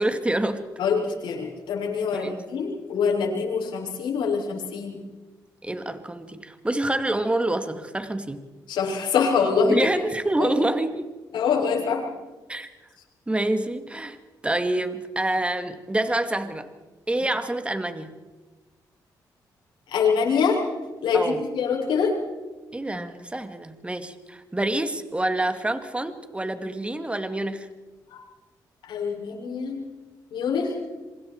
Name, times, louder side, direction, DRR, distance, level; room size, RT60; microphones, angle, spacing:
voice 1, 0.0-0.7 2.1-2.3 5.6-8.5 9.6-11.1 12.5-12.7 13.3-16.7 17.1-18.2 21.1-21.4 22.7-27.7, right 1 dB, 15° right, 8 dB, 2.3 m, -27 dB
voice 2, 0.8-5.0 8.7-9.8 10.4-10.5 11.3-12.1 19.9-20.6 21.0-22.2 28.1-28.2 28.8-29.8 30.3-30.7, left 6 dB, 80° left, -1 dB, 7.1 m, -24 dB
26.5 x 25.0 x 4.7 m, 1.2 s
cardioid pair, 70°, 8 cm